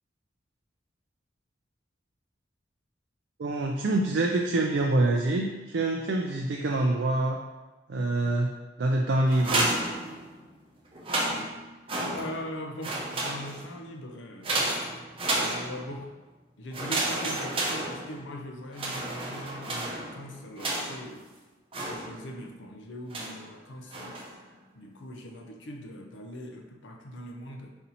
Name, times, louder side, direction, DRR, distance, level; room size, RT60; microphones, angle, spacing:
voice 1, 3.4-7.4 7.9-9.7, right 2 dB, 70° right, 1 dB, 0.4 m, -26 dB
sound 1, 9.3-10.5 10.9-12.5 12.8-13.8 14.4-16.0 16.7-18.4 18.7-21.1 21.7-22.4 23.1-23.5 23.9-24.4, right 2 dB, 30° right, 0.6 m, -31 dB
voice 2, 12.1-14.6 15.3-16.1 16.6-21.2 21.8-24.2 24.7-27.7, equal, 80° left, 2 dB, 0.6 m, -41 dB
4.2 x 2.7 x 4.1 m, 1.2 s
head